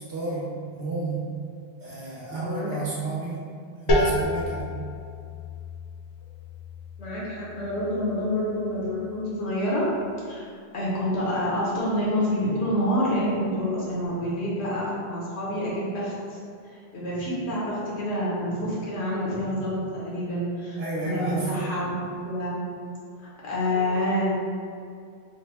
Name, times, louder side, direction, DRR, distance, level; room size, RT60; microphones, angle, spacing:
voice 1, 0.1-1.3 1.8-3.4 3.8-4.7 20.8-21.5, right 3 dB, 65° right, -5 dB, 0.9 m, -31 dB
voice 2, 2.3-2.8 7.0-9.9 10.3-10.5 10.7-16.4 16.7-20.8 21.0-21.9 22.2-22.6 23.2-24.7, equal, 80° left, -7 dB, 1.2 m, -27 dB
sound 1, 3.9-9.4, left 1 dB, 60° left, 0.3 m, -30 dB
3.3 x 2.2 x 3.3 m, 2.3 s
omnidirectional pair, 1.1 m